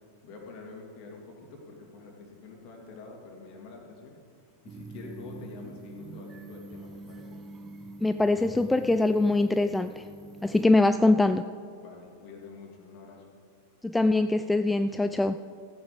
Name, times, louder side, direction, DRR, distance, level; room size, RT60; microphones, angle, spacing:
voice 1, 0.2-4.2 4.6-7.4 10.6-11.0 11.8-13.3, left 4 dB, 40° left, 0 dB, 2.8 m, -46 dB
sound 1, 4.7-10.6, right 2 dB, 25° right, 0.8 m, -44 dB
voice 2, 8.0-10.0 10.4-11.4 13.8-15.4, left 2 dB, 5° left, 10 dB, 0.3 m, -23 dB
15.0 x 9.6 x 5.3 m, 2.2 s
figure-of-eight pair, 90°, 0 cm